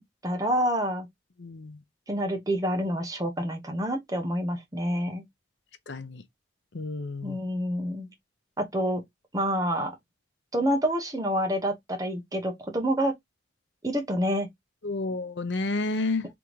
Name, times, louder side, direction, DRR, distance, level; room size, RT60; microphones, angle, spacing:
voice 1, 0.2-1.1 2.1-5.2 7.2-8.1 8.6-9.0 9.3-9.9 10.5-13.1 13.8-14.5, equal, 20° right, 0.9 m, -27 dB
voice 2, 1.4-1.8 5.9-6.2 6.7-7.4 14.8-16.3, left 3 dB, 70° left, 0.7 m, -30 dB
3.8 x 3.5 x 3.1 m
head